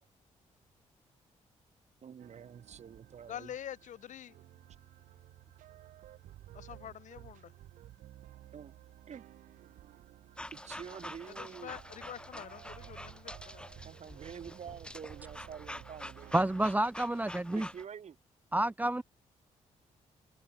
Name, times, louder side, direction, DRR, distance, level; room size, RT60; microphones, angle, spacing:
voice 1, 2.0-3.5 8.5-8.8 9.1-9.2 10.5-11.8 12.3-12.6 13.8-16.3 17.5-18.2, right 7 dB, 60° right, 3.4 m, -47 dB
sound 1, 2.2-16.7, right 14 dB, 90° right, 5.8 m, -54 dB
voice 2, 3.3-4.4 6.5-7.5 11.4-13.6, left 10 dB, 70° left, 2.1 m, -46 dB
sound 2, 10.4-17.8, left 1 dB, 5° left, 4.1 m, -47 dB
voice 3, 16.3-17.7 18.5-19.0, right 1 dB, 10° right, 0.8 m, -29 dB
cardioid pair, 70°, 13 cm